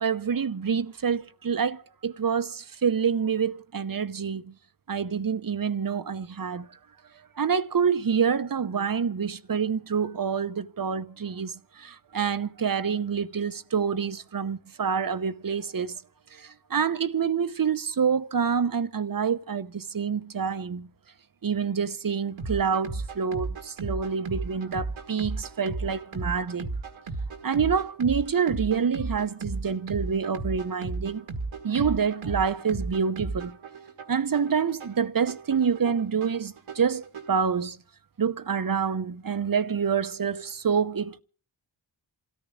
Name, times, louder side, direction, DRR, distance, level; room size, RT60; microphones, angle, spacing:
voice 1, 0.0-4.5 4.9-6.7 7.4-16.0 16.3-20.9 21.4-26.7 27.4-31.2 31.6-33.6 34.1-37.8 38.2-41.2, right 6 dB, 45° right, 0.8 m, -27 dB
sound 1, 22.4-37.4, right 3 dB, 90° right, 1.6 m, -35 dB
27.5 x 14.0 x 3.7 m
cardioid pair, 50°, 47 cm